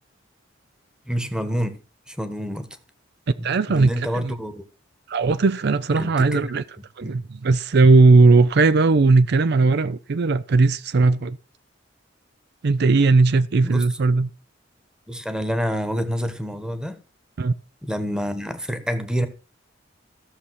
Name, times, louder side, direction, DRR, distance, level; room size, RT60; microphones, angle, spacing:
voice 1, 1.1-2.7 3.4-4.6 6.0-6.5 7.0-7.2 13.6-13.8 15.1-17.0 17.8-19.3, equal, 5° right, 1.2 m, -28 dB
voice 2, 3.4-4.3 5.1-6.6 7.0-11.4 12.6-14.3 17.4-17.5, right 3 dB, 60° right, 0.5 m, -18 dB
14.5 x 7.0 x 4.7 m
head